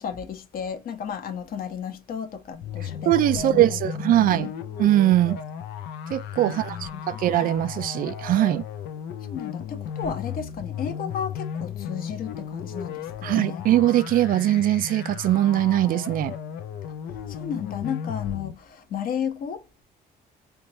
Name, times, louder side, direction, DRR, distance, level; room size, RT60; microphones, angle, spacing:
voice 1, 0.0-3.8 4.1-4.5 6.5-7.0 9.3-13.6 17.3-19.6, left 7 dB, 60° left, 1.0 m, -33 dB
sound 1, 2.5-18.5, left 8 dB, 80° left, 0.6 m, -35 dB
voice 2, 3.1-4.5 4.8-5.4 6.1-8.6 13.2-16.3, right 13 dB, 55° right, 0.4 m, -21 dB
3.5 x 2.9 x 2.6 m
cardioid pair, 110°, 17 cm